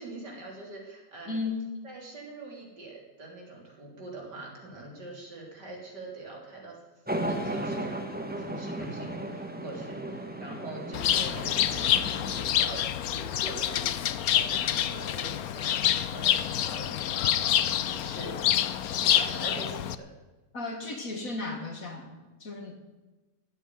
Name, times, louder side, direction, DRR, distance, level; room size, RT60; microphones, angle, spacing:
voice 1, 0.0-1.4 1.8-6.8 7.2-12.9 13.1-18.4 18.8-20.1, right 2 dB, 60° right, -1 dB, 4.1 m, -43 dB
voice 2, 1.3-1.6 20.5-22.1 22.4-22.8, left 3 dB, 45° left, 4 dB, 2.1 m, -34 dB
sound 1, 7.1-12.5, right 1 dB, 5° right, 1.1 m, -35 dB
Bird, 10.9-19.9, left 11 dB, 65° left, 0.9 m, -27 dB
15.5 x 8.7 x 9.2 m, 1.2 s
omnidirectional pair, 2.1 m